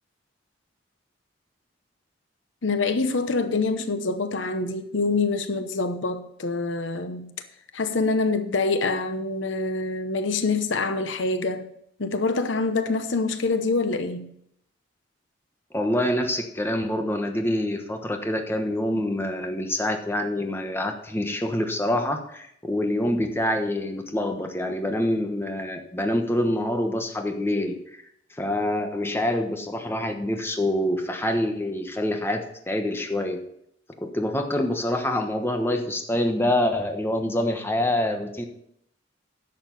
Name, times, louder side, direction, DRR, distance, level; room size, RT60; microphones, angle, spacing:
voice 1, 2.6-7.3 7.7-11.7 12.0-14.3, left 3 dB, 85° left, 0.9 m, -25 dB
voice 2, 15.7-27.7 28.4-33.4 34.0-38.4, left 1 dB, 15° left, 1.1 m, -26 dB
10.5 x 6.9 x 5.3 m
head